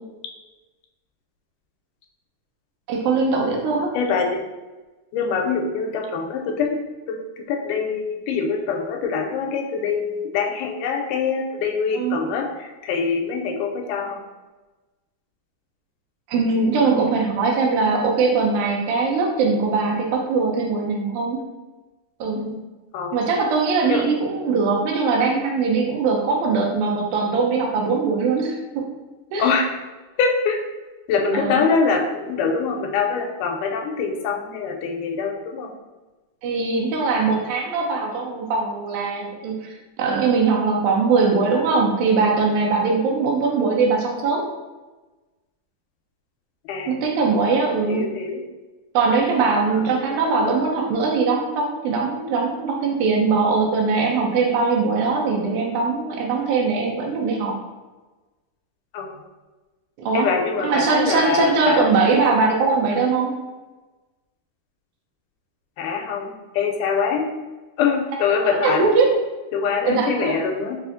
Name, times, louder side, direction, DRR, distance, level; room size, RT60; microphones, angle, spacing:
voice 1, 2.9-3.9 11.9-12.2 16.3-21.5 22.2-22.5 23.1-28.6 29.3-29.5 31.3-31.7 36.4-44.5 46.9-48.1 48.9-57.6 60.0-60.3 60.6-63.4 68.4-69.1 69.9-70.4, right 4 dB, 80° right, 0 dB, 2.0 m, -21 dB
voice 2, 3.9-4.5 5.1-14.2 22.4-22.6 22.9-23.2 23.9-24.1 29.4-29.7 30.2-30.6 31.1-35.7 46.7-47.0 47.9-48.4 49.7-49.9 58.9-59.2 60.1-61.9 65.8-67.3 67.8-68.9 69.5-70.8, left 5 dB, 90° left, 2 dB, 2.1 m, -24 dB
5.0 x 2.4 x 2.5 m, 1.2 s
omnidirectional pair, 3.6 m